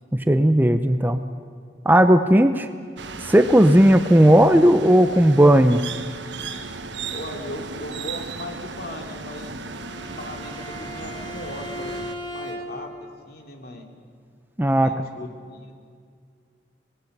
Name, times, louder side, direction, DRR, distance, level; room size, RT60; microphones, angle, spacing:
voice 1, 0.1-1.2 1.9-2.7 3.2-5.8 14.6-14.9, right 1 dB, 10° right, 9 dB, 0.6 m, -15 dB
sound 1, 3.0-12.1, right 4 dB, 75° right, 1.3 m, -36 dB
voice 2, 7.1-9.6 10.0-12.0 12.3-13.9 14.7-15.7, left 1 dB, 55° left, 3 dB, 2.7 m, -37 dB
Bowed string instrument, 9.6-13.0, equal, 25° left, 3.4 m, -37 dB
25.5 x 19.5 x 6.7 m, 2.1 s
head